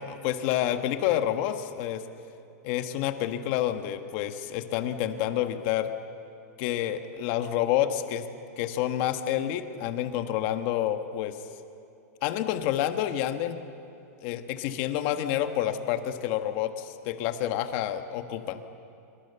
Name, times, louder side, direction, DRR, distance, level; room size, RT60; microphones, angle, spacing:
voice 1, 0.0-2.0 2.6-5.9 6.6-8.3 8.6-11.4 12.2-13.6 14.2-18.6, left 11 dB, 40° left, 8 dB, 1.4 m, -28 dB
26.0 x 23.0 x 7.0 m, 2.7 s
supercardioid pair, 155°, 9 cm